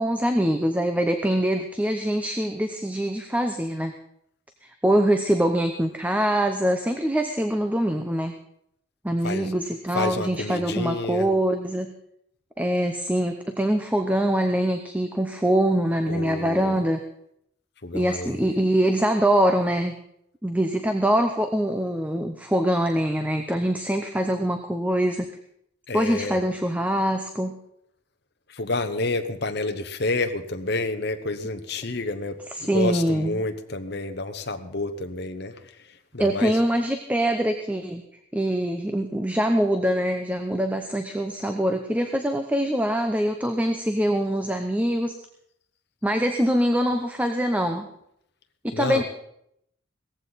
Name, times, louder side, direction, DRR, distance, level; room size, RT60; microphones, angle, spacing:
voice 1, 0.0-3.9 4.6-8.3 9.0-11.9 12.6-17.0 17.9-20.0 20.4-25.3 25.9-27.6 32.5-33.4 36.2-38.0 38.3-45.1 46.0-47.9 48.6-49.0, right 1 dB, 5° right, 6 dB, 0.7 m, -24 dB
voice 2, 9.9-11.3 16.1-16.8 17.8-18.5 25.9-26.5 28.5-36.6 48.7-49.0, left 2 dB, 55° left, 7 dB, 1.0 m, -29 dB
18.0 x 14.5 x 4.1 m, 0.75 s
head